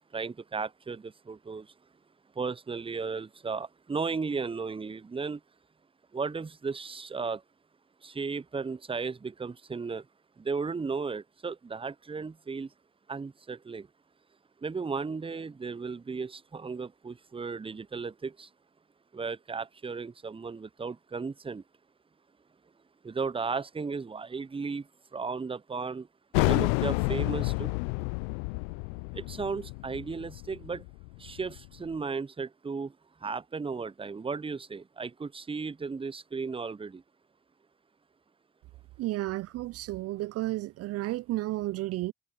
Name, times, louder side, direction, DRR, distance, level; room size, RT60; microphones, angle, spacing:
voice 1, 0.1-1.6 2.4-5.4 6.1-7.4 8.0-10.0 10.4-12.7 13.1-13.9 14.6-18.5 19.1-21.6 23.0-24.8 25.1-26.1 26.3-27.7 29.1-30.8 31.2-32.9 33.2-37.0, right 4 dB, 20° right, 0.9 m, -35 dB
sound 1, 26.3-31.7, left 34 dB, 70° left, 0.7 m, -30 dB
voice 2, 39.0-42.1, right 17 dB, 55° right, 0.6 m, -32 dB
figure-of-eight pair, 50°, 29 cm